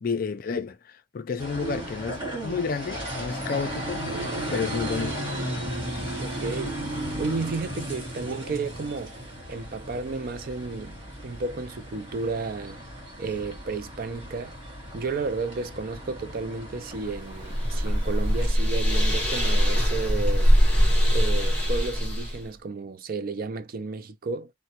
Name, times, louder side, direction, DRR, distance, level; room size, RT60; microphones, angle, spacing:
voice 1, 0.0-4.0 4.5-5.2, left 5 dB, 45° left, 0.4 m, -31 dB
sound 1, 1.4-18.5, right 1 dB, 25° right, 2.2 m, -36 dB
sound 2, 4.0-9.3, right 1 dB, 65° right, 1.0 m, -40 dB
voice 2, 6.2-6.8 7.2-9.1 9.5-10.9 11.2-12.8 13.2-14.6 14.9-20.5 21.1-24.5, right 3 dB, 45° right, 0.4 m, -32 dB
sound 3, 17.1-22.4, equal, 5° left, 1.2 m, -22 dB
3.3 x 2.1 x 2.8 m
head